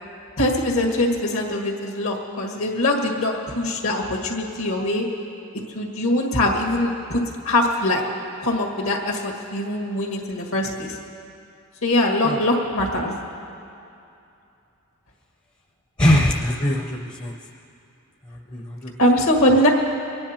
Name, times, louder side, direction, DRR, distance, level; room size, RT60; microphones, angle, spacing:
voice 1, 0.4-5.0 5.7-8.0 8.4-11.0 11.8-13.1 19.0-19.7, left 1 dB, 70° left, 1 dB, 1.9 m, -22 dB
voice 2, 16.0-17.4 18.2-18.9, left 1 dB, 20° left, 1 dB, 0.7 m, -22 dB
24.0 x 9.9 x 4.4 m, 2.7 s
head